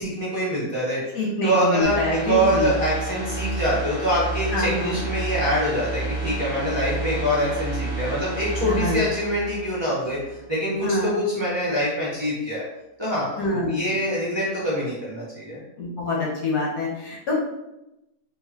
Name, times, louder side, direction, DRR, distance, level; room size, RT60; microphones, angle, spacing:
voice 1, 0.0-1.0 1.4-12.6 13.0-15.6, equal, 20° right, -9 dB, 0.9 m, -25 dB
voice 2, 1.1-2.7 4.5-5.0 8.6-9.0 10.8-11.1 13.4-13.9 15.8-17.3, left 2 dB, 70° left, -4 dB, 1.6 m, -25 dB
sound 1, 1.8-10.5 10.8-10.9, right 3 dB, 40° right, 0.6 m, -30 dB
4.7 x 2.5 x 2.8 m, 0.91 s
omnidirectional pair, 1.8 m